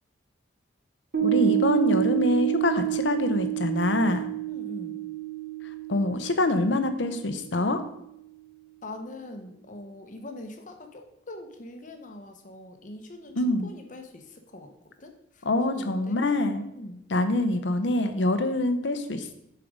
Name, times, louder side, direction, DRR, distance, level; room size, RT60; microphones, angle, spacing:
Piano, 1.1-7.9, right 16 dB, 70° right, 1.2 m, -29 dB
voice 1, 1.2-4.3 5.9-7.8 13.4-13.7 15.4-16.7 17.1-19.3, left 2 dB, 75° left, 9 dB, 0.8 m, -25 dB
voice 2, 4.5-5.0 8.8-14.7 15.0-16.2 16.8-17.1, left 2 dB, 45° left, 5 dB, 0.9 m, -42 dB
7.2 x 4.6 x 5.2 m, 0.79 s
head